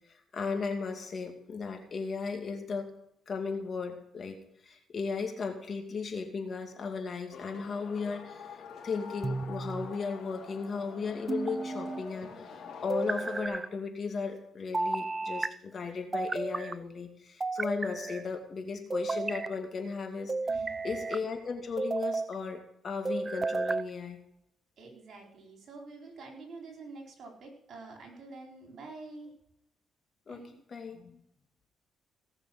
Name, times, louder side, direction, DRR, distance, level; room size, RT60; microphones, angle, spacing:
voice 1, 0.3-2.9 3.3-8.6 8.8-20.3 20.8-24.2 30.3-30.4 30.7-31.2, left 5 dB, 45° left, 3 dB, 2.6 m, -36 dB
sound 1, 7.3-13.5, left 6 dB, 60° left, 4.1 m, -46 dB
sound 2, 9.2-9.9 11.3-12.0 12.9-13.7 14.7-15.5 16.1-16.8 17.4-18.3 18.9-19.5 20.3-21.2 21.8-22.3 23.1-23.9, right 3 dB, 25° right, 0.6 m, -33 dB
voice 2, 20.5-20.9 24.8-29.3 30.3-30.6, right 3 dB, 60° right, 1 dB, 4.4 m, -47 dB
17.5 x 6.8 x 6.2 m, 0.76 s
cardioid pair, 90°, 0 cm